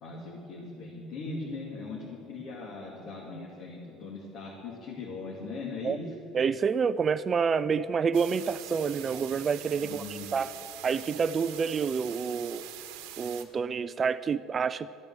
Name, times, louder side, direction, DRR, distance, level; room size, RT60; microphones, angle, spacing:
voice 1, 0.0-6.2 9.8-10.3, left 3 dB, 65° left, -3 dB, 2.4 m, -39 dB
voice 2, 6.3-10.5 10.8-12.7 13.2-14.9, right 6 dB, 30° right, 14 dB, 0.3 m, -28 dB
sound 1, 8.1-13.4, right 12 dB, 85° right, 1.1 m, -44 dB
13.5 x 10.5 x 7.3 m, 2.8 s
cardioid pair, 135°, 0 cm